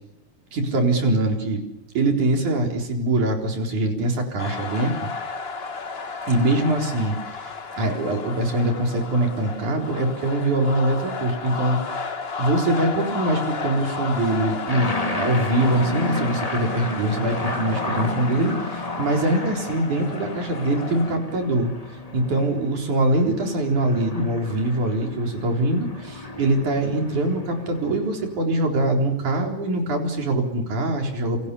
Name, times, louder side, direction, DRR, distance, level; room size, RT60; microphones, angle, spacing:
voice 1, 0.5-1.6 2.0-5.0 6.3-12.1 12.4-21.7 22.1-31.5, right 1 dB, 75° right, 3 dB, 5.6 m, -23 dB
sound 1, 4.4-21.2, left 4 dB, 75° left, 0.5 m, -33 dB
sound 2, 14.7-28.4, left 2 dB, 15° left, 1.5 m, -33 dB
28.5 x 27.5 x 7.0 m, 0.81 s
omnidirectional pair, 3.5 m